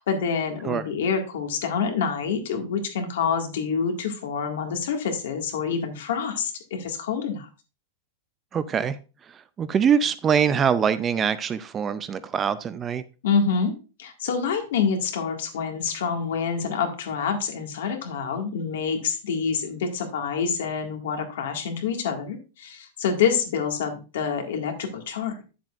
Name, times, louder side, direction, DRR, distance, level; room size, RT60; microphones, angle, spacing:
voice 1, 0.0-7.5 13.2-13.7 14.0-25.5, left 6 dB, 75° left, 4 dB, 1.8 m, -27 dB
voice 2, 8.5-9.0 9.6-13.0, right 7 dB, 15° right, 14 dB, 0.3 m, -23 dB
9.5 x 7.4 x 2.5 m, 0.32 s
supercardioid pair, 175°, 0 cm